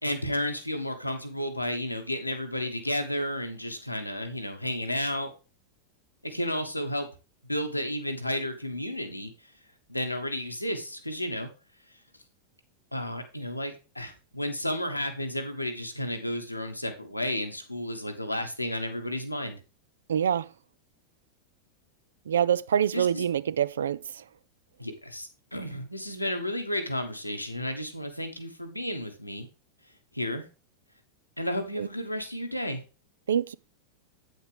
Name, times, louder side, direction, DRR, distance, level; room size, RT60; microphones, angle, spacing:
voice 1, 0.0-5.3 6.2-7.1 7.4-9.3 9.9-11.5 12.9-19.6 22.9-23.2 24.8-29.5 30.1-30.5 31.4-32.8, left 1 dB, 90° left, 1.3 m, -32 dB
voice 2, 20.1-20.5 22.3-24.0 31.8-31.9 33.3-33.5, right 8 dB, 65° right, 0.3 m, -25 dB
8.3 x 7.9 x 3.4 m
figure-of-eight pair, 90°, 0 cm